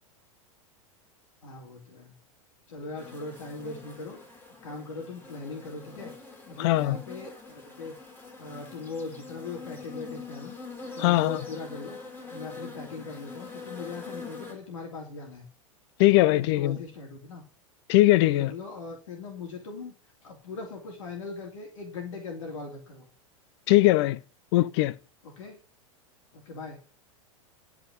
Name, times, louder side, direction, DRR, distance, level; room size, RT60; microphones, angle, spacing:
voice 1, 1.4-2.1 2.7-4.2 4.6-6.1 6.5-8.0 8.4-10.5 10.9-12.0 12.3-15.4 16.3-17.4 18.2-19.9 20.2-23.1 25.2-25.6 26.3-26.8, left 4 dB, 70° left, 3.2 m, -40 dB
sound 1, 3.0-14.5, left 4 dB, 10° left, 3.7 m, -44 dB
voice 2, 6.6-7.0 11.0-11.4 16.0-16.8 17.9-18.5 23.7-24.2 24.5-24.9, left 17 dB, 55° left, 0.7 m, -20 dB
12.0 x 5.2 x 8.0 m
hypercardioid pair, 95°, 17 cm